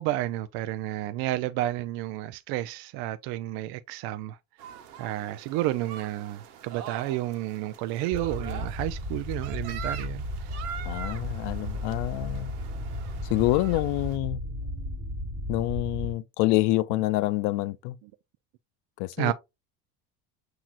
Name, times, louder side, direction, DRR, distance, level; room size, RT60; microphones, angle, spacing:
voice 1, 0.0-4.4 5.0-10.6 14.6-15.0 18.0-18.1 19.2-19.3, right 15 dB, 60° right, 0.5 m, -31 dB
sound 1, 4.6-14.2, right 8 dB, 90° right, 1.1 m, -43 dB
sound 2, 8.1-16.1, left 1 dB, 20° right, 3.0 m, -34 dB
voice 2, 10.9-12.5 13.3-14.4 15.5-18.0 19.0-19.3, left 17 dB, 65° left, 0.5 m, -27 dB
7.2 x 2.9 x 2.4 m
supercardioid pair, 110°, 44 cm